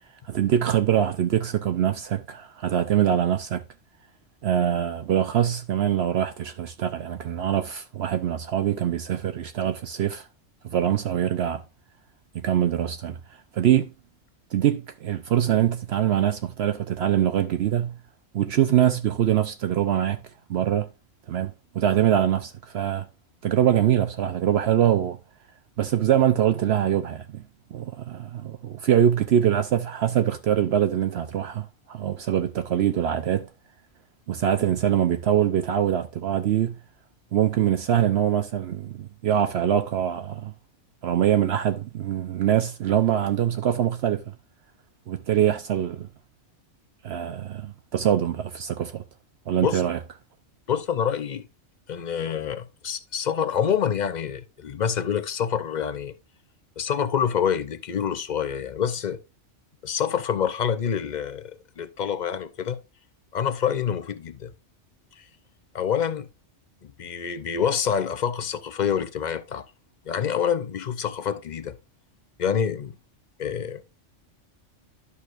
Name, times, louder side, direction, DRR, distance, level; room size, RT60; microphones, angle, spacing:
voice 1, 0.3-3.6 4.4-10.3 10.6-11.6 12.3-13.2 13.5-13.9 14.5-17.9 18.3-20.2 20.5-20.9 21.3-23.1 23.4-25.2 25.8-27.4 27.7-33.5 34.3-36.8 37.3-40.5 41.0-44.3 45.1-46.1 47.0-49.0 49.5-50.0, right 10 dB, 65° right, 0.8 m, -23 dB
voice 2, 50.7-51.5 51.9-56.1 56.8-59.2 59.8-62.8 63.3-64.5 65.2-65.3 65.7-66.3 66.8-69.6 70.1-71.8 72.4-73.0 73.4-73.8, left 8 dB, 50° left, 0.6 m, -27 dB
11.0 x 6.3 x 2.5 m
omnidirectional pair, 1.3 m